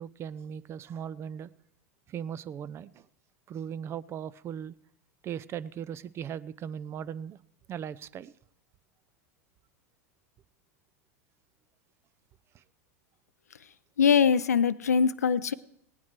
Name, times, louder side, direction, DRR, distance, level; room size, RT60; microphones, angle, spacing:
voice 1, 0.0-1.5 2.1-3.1 3.5-4.8 5.2-7.4 7.7-8.3 12.5-12.6, right 8 dB, 30° right, 18 dB, 0.5 m, -38 dB
voice 2, 14.0-15.5, left 7 dB, 80° left, 15 dB, 0.4 m, -22 dB
18.5 x 9.4 x 4.6 m, 0.75 s
figure-of-eight pair, 90°, 8 cm